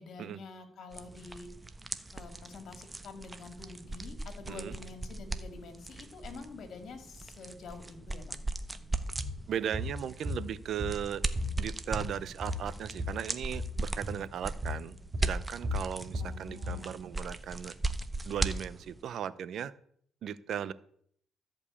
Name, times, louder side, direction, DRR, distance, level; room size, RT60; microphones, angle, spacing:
voice 1, 0.0-1.5 2.1-8.4 16.2-16.9, left 4 dB, 65° left, 7 dB, 2.3 m, -47 dB
sound 1, 0.9-19.0, right 2 dB, 20° right, 1.0 m, -38 dB
sound 2, 9.2-9.4 9.7-9.9 10.3-11.1 11.4-13.2 13.5-13.7 14.0-14.2 14.6-14.8 15.1-16.8, left 1 dB, 35° right, 3.3 m, -35 dB
voice 2, 9.5-11.2 11.6-17.7 18.2-19.7 20.2-20.7, right 9 dB, 65° right, 17 dB, 0.6 m, -37 dB
14.0 x 5.3 x 8.5 m, 0.64 s
cardioid pair, 90°, 0 cm